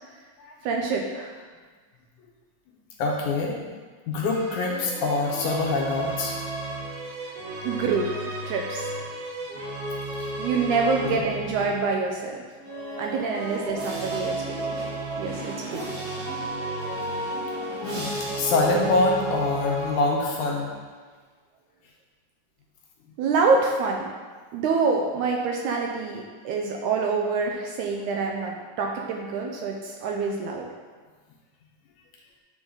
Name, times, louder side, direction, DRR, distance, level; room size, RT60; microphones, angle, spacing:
voice 1, 0.6-1.3 7.6-8.1 8.5-8.9 10.4-12.4 13.0-14.8 15.2-15.8 23.2-24.1 24.5-30.7, right 4 dB, 80° right, 1 dB, 1.9 m, -26 dB
voice 2, 3.0-3.6 4.1-6.4 6.6-6.8 10.2-10.3 11.0-11.2 12.9-13.0 17.3-17.5 17.8-20.7, left 3 dB, 75° left, -1 dB, 2.0 m, -25 dB
sound 1, 4.1-12.0 12.6-20.5, right 1 dB, 55° right, 2.2 m, -33 dB
9.8 x 3.8 x 3.9 m, 1.5 s
omnidirectional pair, 3.9 m